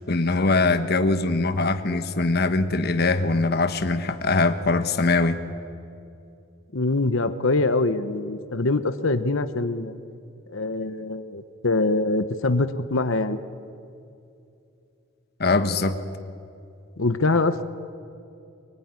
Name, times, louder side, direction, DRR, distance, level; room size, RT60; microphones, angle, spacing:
voice 1, 0.0-5.4 15.4-16.0, left 3 dB, 50° left, 9 dB, 1.3 m, -22 dB
voice 2, 6.7-9.9 10.5-13.4 17.0-17.6, left 2 dB, 65° left, 10 dB, 1.1 m, -24 dB
24.5 x 23.0 x 9.8 m, 2.6 s
head